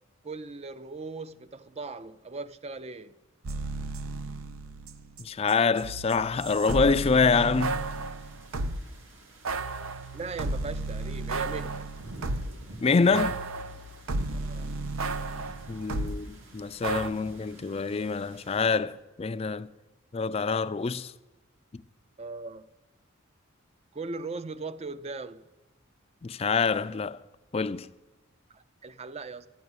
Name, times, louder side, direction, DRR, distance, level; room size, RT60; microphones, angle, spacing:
voice 1, 0.2-3.2 10.1-11.9 14.3-14.8 22.2-22.7 23.9-25.5 28.5-29.5, right 3 dB, 30° right, 0.5 m, -39 dB
sound 1, 3.4-5.2 5.5-8.8 9.4-12.6 13.1-16.2 16.8-17.1, right 2 dB, 85° right, 0.7 m, -33 dB
voice 2, 5.2-7.8 12.8-13.4 15.7-19.7 20.1-21.1 26.2-27.2 27.5-27.9, left 4 dB, 30° left, 0.4 m, -26 dB
sound 2, 7.5-18.6, right 1 dB, 70° right, 2.2 m, -50 dB
12.0 x 9.4 x 8.0 m
head